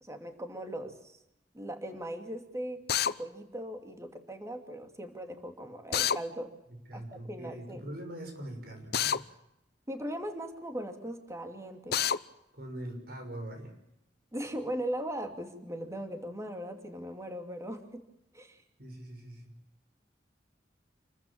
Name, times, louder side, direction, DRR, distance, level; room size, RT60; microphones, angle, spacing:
voice 1, 0.0-1.2 1.5-6.5 6.9-7.8 9.9-12.0 14.3-18.0 18.3-18.6, right 1 dB, 15° right, 5 dB, 2.7 m, -39 dB
Drill, 2.9-3.1 5.9-6.2 8.9-9.2 11.9-12.2, left 9 dB, 60° left, 0.8 m, -27 dB
voice 2, 6.9-9.4 12.5-13.7 18.8-19.5, right 1 dB, 60° right, 4 dB, 6.4 m, -42 dB
28.5 x 14.5 x 8.8 m, 0.85 s
head